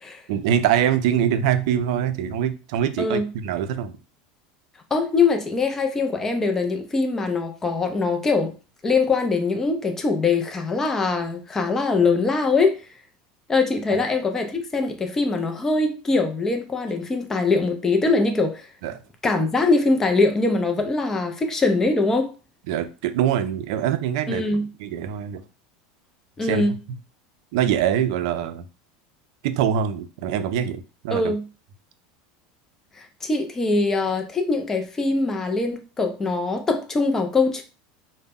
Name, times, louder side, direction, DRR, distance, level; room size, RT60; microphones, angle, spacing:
voice 1, 0.3-3.9 18.8-19.0 22.7-24.4 24.8-25.4 26.4-26.6 27.5-28.6 29.4-31.3, right 9 dB, 70° right, 0.4 m, -23 dB
voice 2, 4.9-8.5 8.8-12.8 13.5-18.7 19.2-22.3 24.3-24.6 26.4-26.8 31.1-31.4 33.0-37.6, left 3 dB, 15° left, 0.3 m, -22 dB
2.0 x 2.0 x 3.5 m
supercardioid pair, 140°, 3 cm